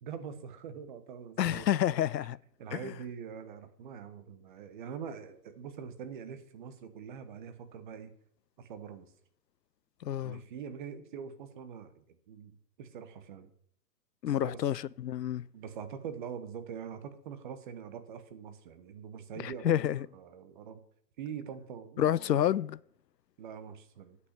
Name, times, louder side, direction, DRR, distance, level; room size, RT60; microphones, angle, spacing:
voice 1, 0.0-1.8 2.1-8.1 8.6-9.1 10.2-13.5 14.3-14.7 15.5-20.8 21.2-22.5 23.4-24.2, right 7 dB, 30° right, 1.0 m, -44 dB
voice 2, 1.4-2.4 2.7-2.9 10.0-10.4 14.2-15.4 19.4-20.1 22.0-22.8, left 11 dB, 90° left, 0.5 m, -29 dB
9.7 x 5.8 x 7.3 m
hypercardioid pair, 140°, 48 cm